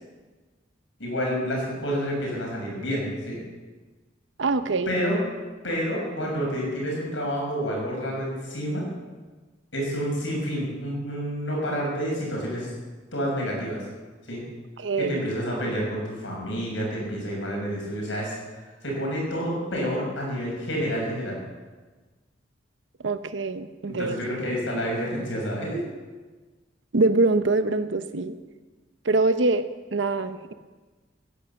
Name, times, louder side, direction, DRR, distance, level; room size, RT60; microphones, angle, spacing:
voice 1, 1.0-3.4 4.9-5.2 5.6-8.9 9.7-12.7 13.1-13.8 14.3-14.4 15.0-18.3 18.8-21.4 23.8-25.8, equal, 85° left, -2 dB, 6.3 m, -29 dB
voice 2, 4.4-4.9 14.8-15.2 23.0-24.2 26.9-28.4 29.0-29.6 29.9-30.5, right 3 dB, 80° right, 10 dB, 0.8 m, -24 dB
15.5 x 11.0 x 7.0 m, 1.3 s
head